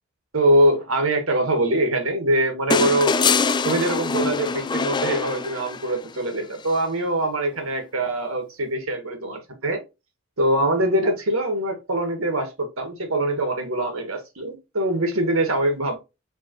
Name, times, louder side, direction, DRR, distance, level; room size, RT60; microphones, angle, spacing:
voice 1, 0.3-3.1 3.6-9.8 10.4-16.0, right 1 dB, 80° right, 1.6 m, -23 dB
sound 1, 2.7-6.0 7.6-7.7, left 5 dB, 20° left, 0.3 m, -23 dB
5.1 x 3.4 x 3.1 m
head